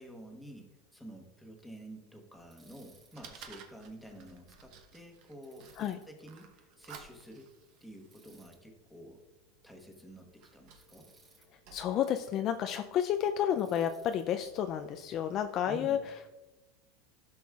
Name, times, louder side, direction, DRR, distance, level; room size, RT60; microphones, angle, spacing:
voice 1, 0.0-7.5 7.8-9.2 9.6-11.1 15.7-16.0, right 1 dB, ahead, 1 dB, 1.3 m, -50 dB
Fire, 2.3-15.8, right 5 dB, 55° right, 1.0 m, -57 dB
Bicycle, 2.5-3.2 5.4-6.1 8.1-8.6 10.8-11.5 13.6-14.3, right 3 dB, 15° right, 2.9 m, -63 dB
voice 2, 11.7-16.0, left 9 dB, 40° left, 7 dB, 0.4 m, -31 dB
12.5 x 6.1 x 2.4 m, 1.1 s
supercardioid pair, 130°, 0 cm